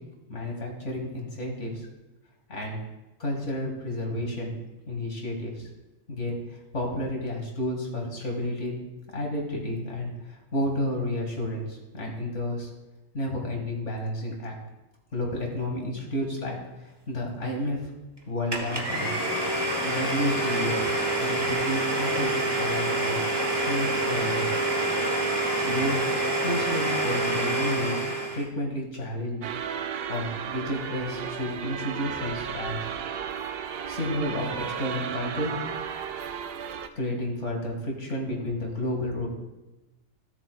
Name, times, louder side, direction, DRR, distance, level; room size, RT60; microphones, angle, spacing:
voice 1, 0.3-1.9 2.5-2.8 3.2-4.6 4.9-5.7 6.1-8.8 9.1-12.7 13.1-14.5 15.1-17.8 18.3-19.1 19.8-20.8 21.2-23.2 23.6-24.5 25.6-26.0 26.4-28.1 28.3-29.5 30.1-32.9 33.9-35.6 37.0-39.3, left 1 dB, 75° left, 0 dB, 2.3 m, -31 dB
Domestic sounds home sounds, 18.5-28.5, right 2 dB, 20° right, 1.3 m, -27 dB
sound 1, 29.4-36.9, right 8 dB, 65° right, 0.7 m, -34 dB
16.0 x 7.2 x 2.3 m, 1.0 s
omnidirectional pair, 1.2 m